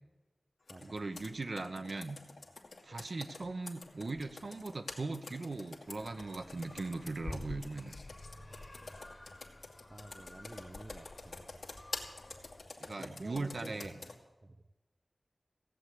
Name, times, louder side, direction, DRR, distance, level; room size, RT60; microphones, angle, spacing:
Computer keyboard, 0.7-14.2, left 3 dB, 80° left, 2.3 m, -47 dB
voice 1, 0.8-2.2 2.8-7.9 12.8-14.0, right 3 dB, 60° right, 8 dB, 0.9 m, -39 dB
sound 1, 5.9-12.6, left 1 dB, 30° left, 1.4 m, -56 dB
voice 2, 8.3-9.1 9.9-11.4 12.8-13.8 14.4-14.6, right 2 dB, 30° right, 9 dB, 0.5 m, -51 dB
16.5 x 8.2 x 9.4 m, 1.2 s
wide cardioid pair, 90°, 0 cm